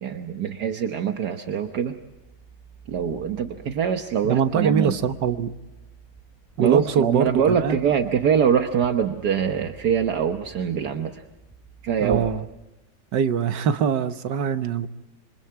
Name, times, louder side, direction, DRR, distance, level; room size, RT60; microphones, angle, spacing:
voice 1, 0.0-2.0 2.9-4.9 6.6-11.2 11.8-12.2, right 7 dB, 70° right, 6 dB, 1.7 m, -24 dB
sound 1, 1.6-12.2, right 5 dB, ahead, 7.3 m, -48 dB
voice 2, 4.2-5.5 6.6-7.8 12.0-12.4 13.1-14.9, right 7 dB, 90° right, 10 dB, 1.8 m, -23 dB
28.0 x 25.0 x 4.7 m, 1.0 s
omnidirectional pair, 1.8 m